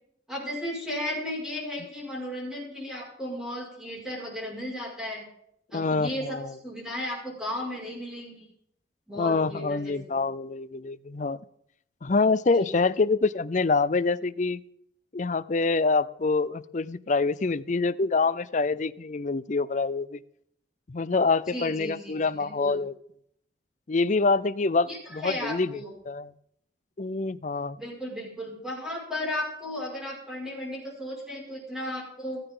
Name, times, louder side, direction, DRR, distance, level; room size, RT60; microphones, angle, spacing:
voice 1, 0.3-5.2 5.7-8.5 9.1-10.2 12.6-12.9 21.5-22.8 24.9-25.9 27.8-32.4, left 1 dB, 5° right, -3 dB, 5.7 m, -35 dB
voice 2, 5.7-6.5 9.2-11.4 12.0-14.6 15.1-20.2 20.9-22.9 23.9-25.8 26.1-26.3 27.0-27.8, left 3 dB, 40° left, 15 dB, 0.5 m, -26 dB
16.5 x 14.5 x 3.8 m, 0.70 s
head